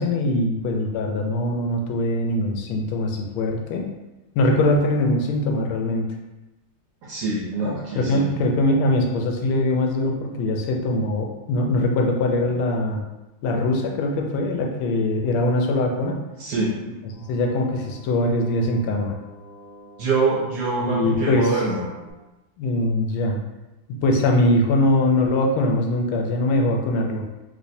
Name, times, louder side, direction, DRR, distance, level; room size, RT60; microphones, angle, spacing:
voice 1, 0.0-3.9 4.3-6.1 7.6-13.0 13.4-16.2 17.3-19.2 20.8-21.5 22.6-23.4 23.9-27.2, left 1 dB, 85° left, 1 dB, 1.4 m, -22 dB
voice 2, 7.0-8.3 16.4-16.7 20.0-21.9, right 3 dB, 70° right, -4 dB, 0.9 m, -24 dB
sound 1, 17.1-22.1, equal, 40° right, 0.8 m, -47 dB
3.2 x 3.1 x 2.6 m, 1.0 s
omnidirectional pair, 2.2 m